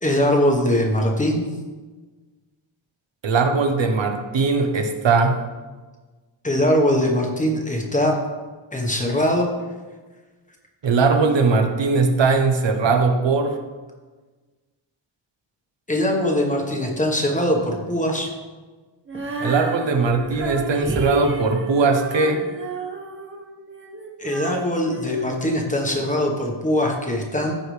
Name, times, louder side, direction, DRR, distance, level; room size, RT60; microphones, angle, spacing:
voice 1, 0.0-1.6 6.4-8.2 8.7-9.5 15.9-18.3 24.2-27.5, left 1 dB, 15° left, 1 dB, 1.2 m, -21 dB
voice 2, 3.2-5.3 10.8-13.6 19.4-22.5, right 4 dB, 65° right, 5 dB, 1.0 m, -20 dB
Female singing, 19.1-26.1, right 3 dB, 25° right, 1.1 m, -32 dB
14.5 x 5.0 x 3.3 m, 1.3 s
wide cardioid pair, 155°, 48 cm